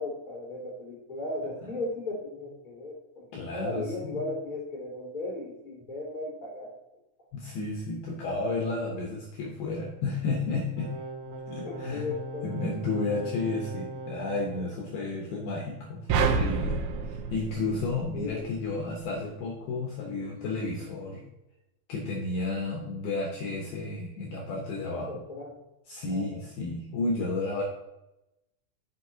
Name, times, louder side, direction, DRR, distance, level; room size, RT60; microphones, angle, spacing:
voice 1, 0.0-6.7 11.6-12.7 13.3-13.5 18.1-18.5 24.9-25.6 26.1-26.4, left 2 dB, 35° left, -5 dB, 0.7 m, -36 dB
voice 2, 3.3-4.2 7.3-10.9 11.5-12.1 12.4-21.2 21.9-25.1 25.9-27.6, left 3 dB, 75° left, 0 dB, 2.3 m, -32 dB
sound 1, 10.8-14.7, right 1 dB, 40° right, 2.2 m, -39 dB
sound 2, 16.1-18.5, right 5 dB, 80° right, 3.0 m, -28 dB
9.7 x 6.9 x 2.8 m, 0.92 s
omnidirectional pair, 5.8 m